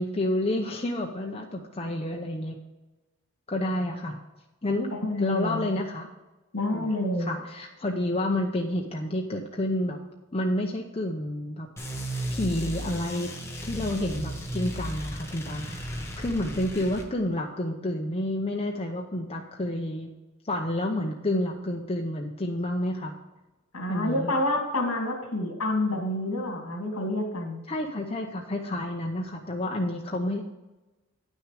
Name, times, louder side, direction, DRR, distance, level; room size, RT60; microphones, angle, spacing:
voice 1, 0.0-2.6 3.5-4.1 4.6-4.9 5.2-6.1 6.7-6.9 7.2-10.0 10.3-11.7 12.3-13.3 13.6-15.6 15.9-20.1 20.4-23.1 23.9-24.3 27.7-30.4, left 1 dB, 25° left, 1 dB, 0.7 m, -29 dB
voice 2, 4.9-5.7 6.5-7.3 23.7-27.6, left 1 dB, 70° left, 2 dB, 2.5 m, -28 dB
sound 1, 11.8-17.1, equal, 10° left, 1.3 m, -35 dB
9.7 x 6.4 x 4.9 m, 1.1 s
head